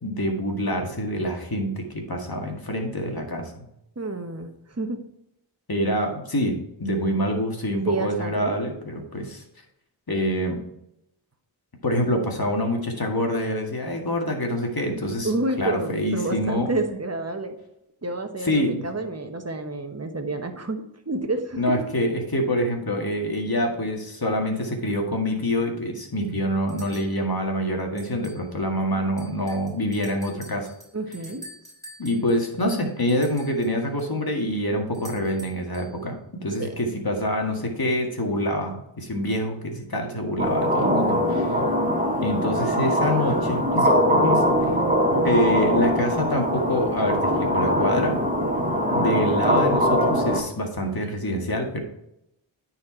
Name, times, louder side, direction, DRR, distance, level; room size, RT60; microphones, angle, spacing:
voice 1, 0.0-3.5 5.7-9.4 10.1-10.6 11.8-15.3 15.6-16.7 18.4-18.9 21.6-30.7 32.0-36.2 36.4-41.2 42.2-44.4 45.2-48.2 48.9-51.8, equal, 45° left, 2 dB, 2.0 m, -26 dB
voice 2, 4.0-5.0 7.8-8.6 15.2-17.6 18.0-21.8 30.9-31.4 36.6-36.8 40.8-41.3, right 2 dB, 30° right, 5 dB, 1.2 m, -29 dB
sound 1, 26.1-26.2 26.7-27.2 28.0-28.5 28.8-28.9 29.2-34.1 34.9-36.0, right 1 dB, 5° left, 3.1 m, -46 dB
sound 2, 40.4-50.4, equal, 15° right, 1.5 m, -22 dB
9.4 x 4.5 x 4.5 m, 0.80 s
wide cardioid pair, 50°, 49 cm